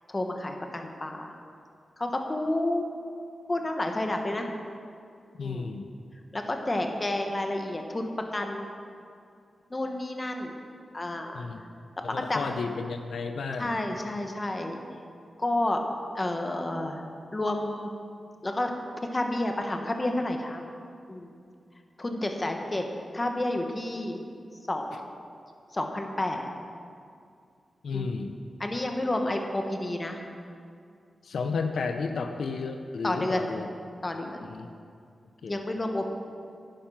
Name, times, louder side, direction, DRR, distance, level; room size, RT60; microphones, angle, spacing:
voice 1, 0.1-1.3 2.0-2.9 3.5-4.5 5.4-5.7 6.3-8.7 9.7-10.6 10.9-11.7 12.3-12.5 13.6-15.0 15.4-15.8 16.1-17.0 17.3-17.9 18.4-18.7 19.0-20.6 21.1-21.3 22.0-22.8 23.1-24.3 24.7-25.1 25.7-26.5 27.9-28.1 28.6-30.2 33.0-33.5 34.0-34.4 35.5-36.1, left 1 dB, 25° left, 4 dB, 1.3 m, -30 dB
voice 2, 5.4-5.9 11.3-11.6 12.0-13.7 27.8-28.4 31.2-33.7 34.4-34.7 35.4-35.6, left 4 dB, 85° left, 6 dB, 0.6 m, -32 dB
10.5 x 10.5 x 5.9 m, 2.3 s
wide cardioid pair, 90°, 0 cm